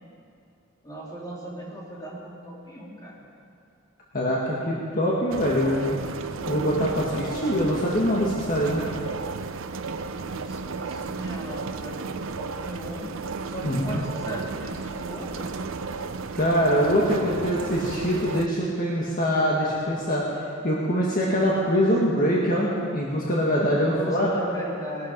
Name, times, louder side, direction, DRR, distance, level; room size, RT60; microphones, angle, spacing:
voice 1, 0.8-3.3 10.2-13.1 13.5-15.5 23.8-25.1, right 1 dB, 20° left, -5 dB, 3.2 m, -37 dB
voice 2, 4.1-6.0 6.5-8.8 13.6-14.0 16.3-20.2 20.6-24.3, equal, 45° left, -4 dB, 1.7 m, -23 dB
sound 1, 5.3-18.5, right 4 dB, 75° right, 0.6 m, -33 dB
19.5 x 12.0 x 5.3 m, 2.5 s
head